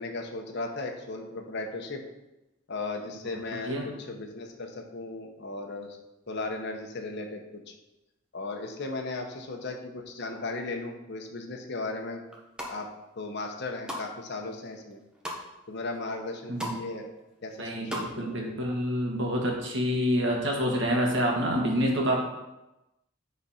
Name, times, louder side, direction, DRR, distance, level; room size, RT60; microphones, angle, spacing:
voice 1, 0.0-2.0 2.7-6.0 6.3-7.7 8.3-12.2 12.7-12.9 13.1-15.0 15.7-17.1 17.4-18.5, left 3 dB, 55° left, 3 dB, 1.0 m, -36 dB
sound 1, 12.3-12.7 13.3-14.1 14.5-15.4 15.9-16.0 16.2-16.8 17.1-18.1 18.4-18.5, equal, 5° right, 1.1 m, -37 dB
voice 2, 17.6-22.2, equal, 60° right, -1 dB, 1.7 m, -27 dB
10.5 x 4.1 x 4.3 m, 0.98 s
head